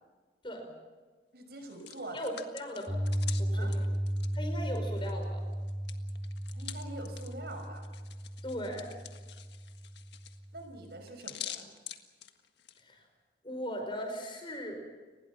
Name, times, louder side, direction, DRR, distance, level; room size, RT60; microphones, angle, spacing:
voice 1, 1.3-2.2 3.5-3.7 6.5-7.9 10.5-11.7, right 2 dB, 65° right, 5 dB, 5.7 m, -44 dB
Hands, 1.5-5.2 5.5-12.8, left 11 dB, 80° left, 1.7 m, -47 dB
voice 2, 2.1-3.0 3.4-3.8 4.3-5.4 8.4-8.9 12.8-13.0 13.4-14.8, equal, 30° left, 4 dB, 5.2 m, -38 dB
Piano, 2.9-11.0, equal, 15° right, 4.0 m, -35 dB
30.0 x 20.5 x 5.9 m, 1.3 s
head